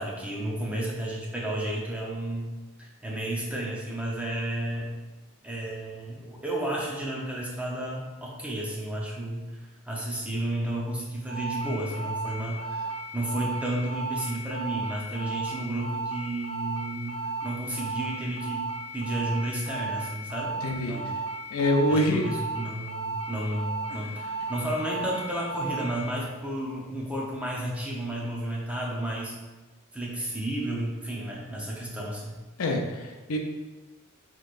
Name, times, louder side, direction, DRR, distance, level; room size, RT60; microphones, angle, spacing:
voice 1, 0.0-2.5 2.8-4.9 5.4-9.5 9.8-18.7 18.9-20.6 20.9-21.1 21.9-29.3 29.9-32.4, right 1 dB, 5° right, -4 dB, 0.7 m, -32 dB
sound 1, 11.3-26.1, right 3 dB, 85° right, 1.3 m, -35 dB
voice 2, 20.6-20.9 21.5-22.3 23.9-24.0 32.6-33.4, left 1 dB, 70° left, 2 dB, 0.6 m, -25 dB
6.3 x 3.0 x 2.5 m, 1.2 s
head